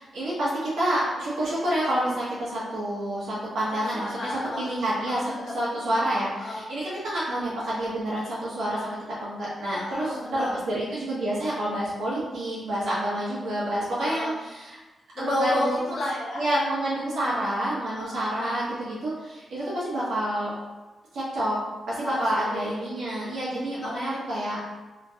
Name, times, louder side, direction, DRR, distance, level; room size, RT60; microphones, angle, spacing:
voice 1, 0.0-5.2 5.5-14.8 15.2-15.8 16.4-20.5 21.1-21.6 21.9-24.6, right 1 dB, 85° right, -8 dB, 1.4 m, -28 dB
voice 2, 3.7-4.7 5.0-5.5 6.4-6.6 9.7-10.6 13.9-14.3 15.1-16.4 17.8-18.2 22.0-22.8 23.8-24.1, left 1 dB, 45° left, -6 dB, 0.8 m, -32 dB
3.7 x 2.4 x 2.8 m, 1.2 s
wide cardioid pair, 165°, 0 cm